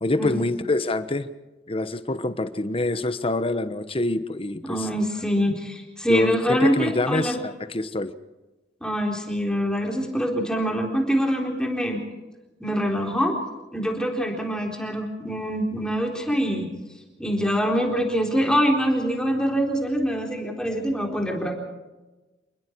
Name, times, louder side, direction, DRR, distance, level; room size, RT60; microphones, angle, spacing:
voice 1, 0.0-1.3 1.7-4.9 6.1-8.1, left 2 dB, 30° left, 12 dB, 1.1 m, -25 dB
voice 2, 4.6-7.4 8.8-12.0 12.6-13.3 13.7-16.7 17.2-21.5, equal, 5° left, 1 dB, 4.0 m, -24 dB
28.5 x 20.5 x 4.7 m, 1.1 s
head